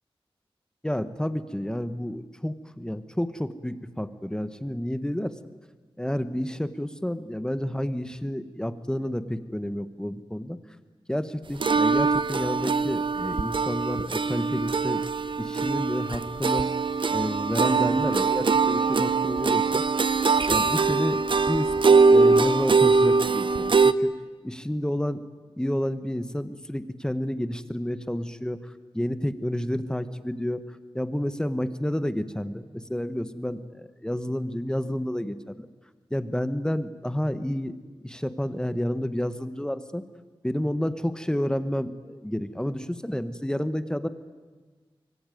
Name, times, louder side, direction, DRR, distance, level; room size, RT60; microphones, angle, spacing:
voice 1, 0.8-5.3 6.0-10.6 11.1-15.0 15.4-16.7 17.1-19.8 20.5-24.1 24.4-25.2 25.6-30.6 30.9-35.7 36.1-37.8 38.0-40.0 40.4-44.1, equal, 10° left, 11 dB, 1.4 m, -30 dB
sound 1, 11.6-23.9, right 4 dB, 60° right, 0.8 m, -22 dB
24.5 x 24.0 x 9.4 m, 1.3 s
wide cardioid pair, 100°, 9 cm